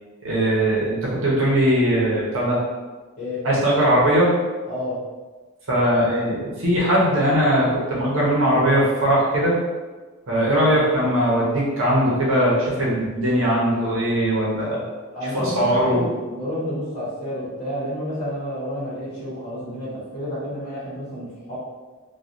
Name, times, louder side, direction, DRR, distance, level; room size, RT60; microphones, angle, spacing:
voice 1, 0.2-2.6 3.4-4.3 5.7-9.6 10.3-14.8 15.2-16.0, equal, 60° right, -6 dB, 0.9 m, -20 dB
voice 2, 4.7-5.0 10.5-10.7 15.1-21.6, equal, 35° left, -10 dB, 1.0 m, -30 dB
3.1 x 2.3 x 2.5 m, 1.3 s
head